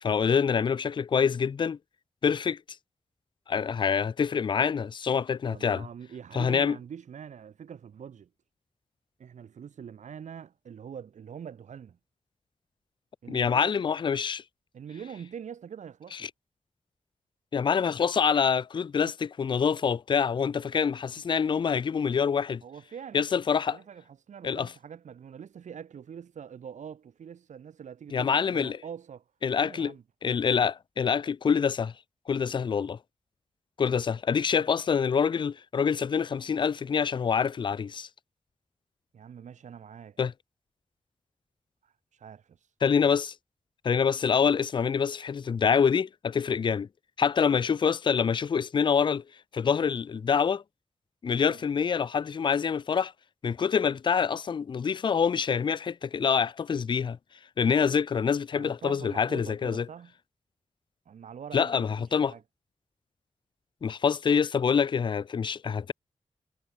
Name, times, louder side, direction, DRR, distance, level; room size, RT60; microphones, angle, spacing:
voice 1, 0.0-1.8 2.2-2.6 3.5-5.9 6.3-6.8 13.3-14.4 16.1-16.3 17.5-22.6 23.1-23.8 24.4-24.7 28.1-28.8 29.4-29.9 30.2-31.9 32.3-33.0 33.8-38.1 40.2-40.3 42.8-43.3 43.8-46.9 47.2-49.2 49.5-50.6 51.2-53.1 53.4-57.2 57.6-59.9 61.5-62.3 63.8-65.9, left 6 dB, 40° left, 0.4 m, -26 dB
voice 2, 5.5-8.3 9.2-12.0 13.2-13.7 14.7-16.3 22.6-23.3 23.7-29.3 29.6-30.0 39.1-40.2 41.8-42.7 51.5-51.6 58.5-60.1 61.1-61.8 62.1-62.4, right 8 dB, 85° right, 0.7 m, -44 dB
wide cardioid pair, 170°, 12 cm